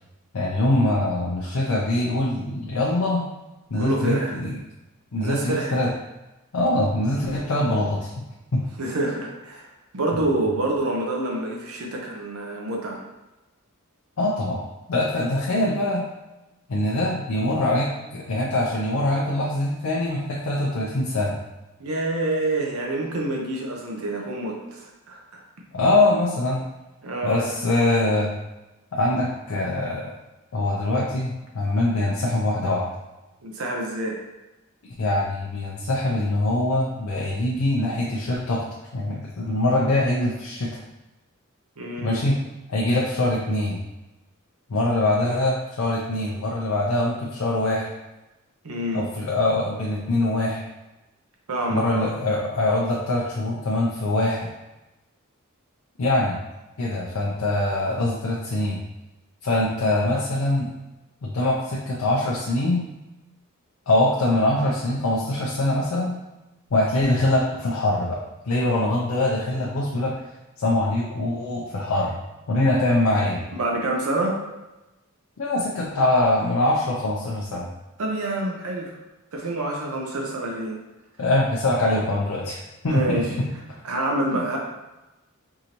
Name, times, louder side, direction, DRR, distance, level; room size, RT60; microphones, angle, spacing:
voice 1, 0.3-3.2 3.7-4.6 5.1-5.9 6.5-8.3 8.5-8.6 14.2-16.0 16.7-21.4 25.7-26.6 27.2-28.3 28.9-30.2 30.5-32.9 34.8-38.7 38.9-40.7 42.0-42.4 42.7-43.8 44.7-47.9 48.9-50.6 51.7-54.5 56.0-56.4 56.8-58.8 59.4-60.7 61.2-62.9 63.9-66.1 66.7-70.2 70.6-72.2 72.5-73.4 75.4-77.7 81.2-83.2 84.3-84.4, left 1 dB, 75° left, -3 dB, 0.6 m, -23 dB
voice 2, 3.8-4.4 5.2-5.8 8.8-9.7 9.9-13.0 21.8-25.4 27.0-27.4 33.4-34.2 41.8-42.2 48.6-49.1 51.5-52.1 73.5-74.4 78.0-79.0 79.3-80.8 82.9-83.3 83.8-84.6, right 1 dB, 75° right, -1 dB, 0.7 m, -27 dB
4.7 x 2.6 x 2.9 m, 1.0 s
head